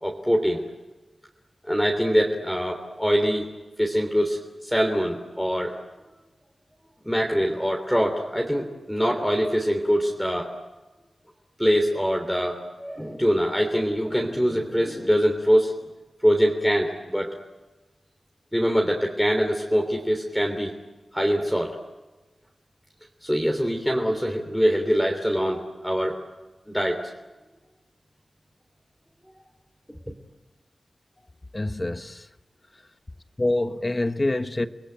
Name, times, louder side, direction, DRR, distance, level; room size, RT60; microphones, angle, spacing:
voice 1, 0.0-0.6 1.6-3.5 3.8-5.7 7.0-10.5 11.6-15.7 16.2-17.3 18.5-20.7 21.1-21.8 23.2-26.2 26.7-27.0, equal, ahead, 3.1 m, -23 dB
voice 2, 31.5-32.3 33.4-34.7, left 2 dB, 25° left, 1.2 m, -26 dB
30.0 x 21.0 x 9.2 m
wide cardioid pair, 95°, 0 cm